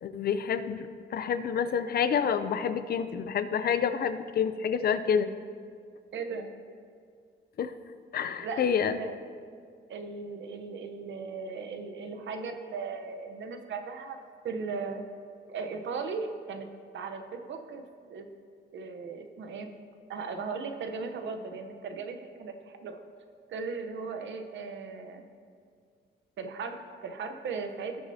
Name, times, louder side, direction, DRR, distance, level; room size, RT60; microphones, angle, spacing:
voice 1, 0.0-5.3 7.6-7.7 8.1-9.0, left 7 dB, 55° left, 11 dB, 0.4 m, -28 dB
voice 2, 6.1-6.5 8.4-9.2 9.9-14.2 14.4-15.0 15.5-16.7 16.9-17.8 18.1-18.3 18.7-19.7 20.1-23.0 23.5-25.2 26.4-28.0, right 4 dB, 75° right, 6 dB, 0.8 m, -37 dB
17.0 x 6.4 x 2.7 m, 2.2 s
wide cardioid pair, 170°, 20 cm